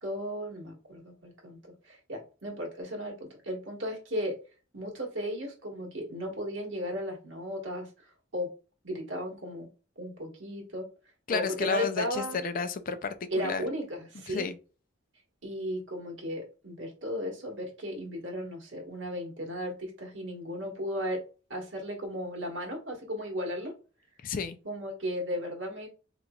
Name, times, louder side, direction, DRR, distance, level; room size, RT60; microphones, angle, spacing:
voice 1, 0.0-1.6 1.8-4.4 4.7-8.5 8.8-9.7 10.0-10.9 11.3-12.4 13.3-14.5 15.4-21.2 21.5-23.7 24.6-25.9, equal, 80° right, 1.4 m, -35 dB
voice 2, 11.3-13.7 14.3-14.6 24.2-24.6, left 5 dB, 45° left, 0.4 m, -31 dB
3.9 x 3.0 x 2.3 m
head